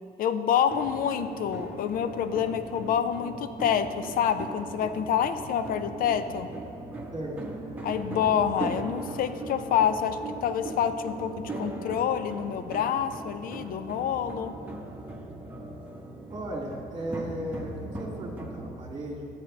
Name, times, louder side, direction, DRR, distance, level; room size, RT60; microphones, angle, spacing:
voice 1, 0.2-6.5 7.8-14.5, left 8 dB, 55° left, 11 dB, 0.5 m, -27 dB
sound 1, 0.7-18.7, right 2 dB, 10° right, 1.3 m, -39 dB
voice 2, 7.1-7.5 16.3-19.3, right 1 dB, 25° right, -2 dB, 2.0 m, -36 dB
12.0 x 8.2 x 3.3 m, 2.7 s
cardioid pair, 110°, 17 cm